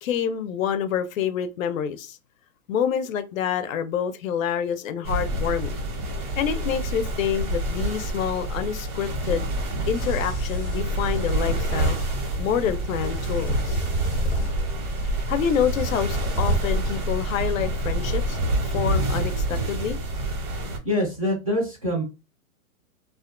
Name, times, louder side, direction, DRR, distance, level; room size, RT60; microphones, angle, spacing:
voice 1, 0.0-2.2 2.7-5.8 6.4-9.5 9.9-12.0 12.4-13.9 15.0-18.4 18.7-20.0, left 8 dB, 70° left, 0.5 m, -27 dB
sound 1, 5.0-20.8, right 1 dB, 90° right, 1.2 m, -28 dB
sound 2, 9.1-16.6, right 1 dB, 25° left, 0.6 m, -30 dB
voice 2, 20.8-22.0, left 1 dB, 25° right, 0.4 m, -25 dB
2.4 x 2.1 x 2.4 m
hypercardioid pair, 170°, 42 cm